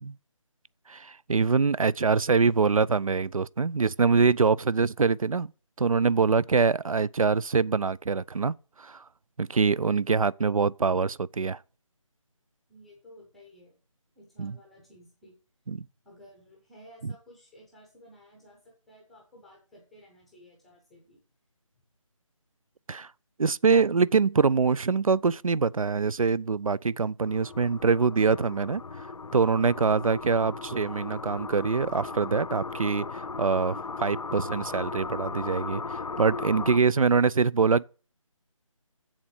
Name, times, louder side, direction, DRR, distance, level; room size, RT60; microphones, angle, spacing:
voice 1, 0.9-5.5 5.8-9.0 9.4-11.6 14.4-14.6 15.7-15.8 17.0-17.1 22.9-23.1 23.4-28.8 29.3-37.8, right 5 dB, 80° right, 0.4 m, -24 dB
voice 2, 12.7-13.8 14.1-15.4 16.0-21.2 36.7-37.0, equal, ahead, 0.6 m, -54 dB
sound 1, 27.2-36.8, left 4 dB, 75° left, 0.4 m, -37 dB
7.6 x 7.2 x 6.5 m
figure-of-eight pair, 160°, 17 cm